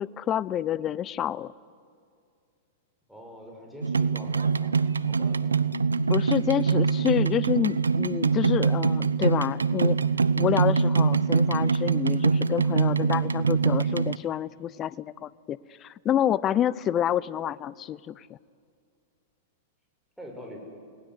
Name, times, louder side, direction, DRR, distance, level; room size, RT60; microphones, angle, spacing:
voice 1, 0.0-1.5 6.1-10.0 10.4-18.4, left 10 dB, 30° left, 20 dB, 0.5 m, -28 dB
voice 2, 3.1-5.6 20.2-20.6, equal, ahead, 0 dB, 7.1 m, -44 dB
sound 1, 3.8-14.2, right 5 dB, 90° right, 0.6 m, -24 dB
29.0 x 19.5 x 8.3 m, 2.3 s
hypercardioid pair, 105°, 0 cm